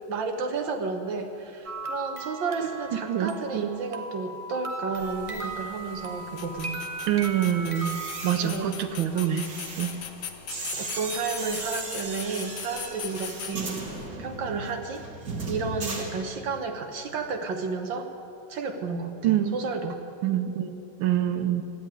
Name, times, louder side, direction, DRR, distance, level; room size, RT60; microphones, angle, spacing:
voice 1, 0.1-6.8 8.4-8.7 10.7-13.9 14.2-15.1 15.5-18.1 18.5-20.0, right 4 dB, 70° right, 5 dB, 1.8 m, -32 dB
sound 1, 1.7-8.3, right 3 dB, 35° right, 0.5 m, -37 dB
voice 2, 3.1-3.7 7.1-9.5 9.8-9.9 19.2-19.6 20.2-21.6, right 10 dB, 85° right, 9 dB, 1.6 m, -26 dB
sound 2, 4.9-14.1, left 8 dB, 70° left, 1.5 m, -41 dB
sound 3, 7.6-16.7 17.0-17.3, right 3 dB, 55° right, 2.0 m, -37 dB
13.5 x 10.5 x 9.0 m, 2.7 s
omnidirectional pair, 2.1 m